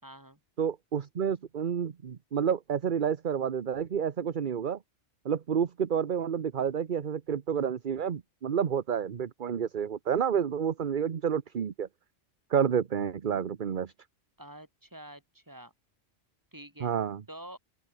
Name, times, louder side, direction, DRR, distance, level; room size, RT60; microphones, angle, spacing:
voice 1, 0.0-0.4 14.4-15.7 16.5-16.9 17.3-17.6, right 1 dB, 15° right, 4.0 m, -47 dB
voice 2, 0.6-4.8 5.2-11.9 12.5-13.9 16.8-17.2, right 8 dB, 45° right, 1.0 m, -29 dB
open air
omnidirectional pair, 1.2 m